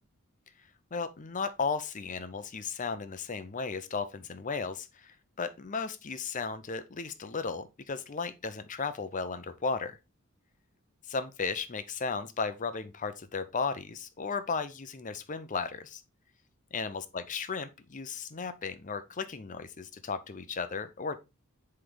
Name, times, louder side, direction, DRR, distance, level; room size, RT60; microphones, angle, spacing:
voice 1, 0.9-10.0 11.1-16.0 16.7-21.2, left 5 dB, 35° left, 0.6 m, -35 dB
7.9 x 3.3 x 3.8 m
head